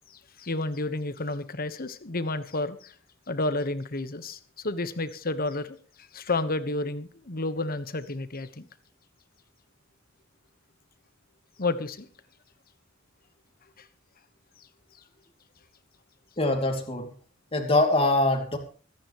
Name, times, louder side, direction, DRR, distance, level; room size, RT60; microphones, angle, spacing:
voice 1, 0.1-2.9 3.3-8.7 11.6-12.1 13.8-13.9, left 2 dB, 45° left, 12 dB, 1.3 m, -31 dB
voice 2, 16.4-17.1 17.5-18.6, left 2 dB, 30° left, 2 dB, 2.7 m, -23 dB
25.0 x 10.0 x 3.1 m, 0.39 s
head